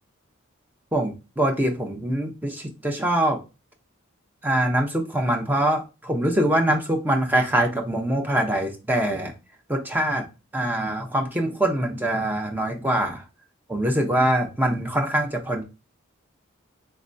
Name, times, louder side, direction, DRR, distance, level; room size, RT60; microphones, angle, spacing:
voice 1, 0.9-3.4 4.4-9.3 9.7-10.3 10.5-13.2 13.7-15.6, right 1 dB, 10° right, 3 dB, 0.6 m, -23 dB
3.3 x 3.3 x 2.6 m, 0.28 s
head